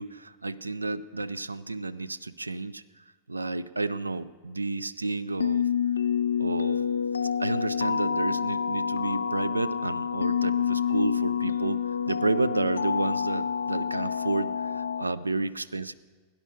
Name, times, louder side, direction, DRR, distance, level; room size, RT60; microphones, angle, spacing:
voice 1, 0.0-2.8 3.3-5.7 6.4-6.8 7.4-15.9, right 2 dB, 80° right, 17 dB, 0.3 m, -31 dB
sound 1, 5.4-15.0, left 7 dB, 75° left, 0.4 m, -28 dB
17.0 x 10.0 x 5.0 m, 1.4 s
figure-of-eight pair, 90°, 0 cm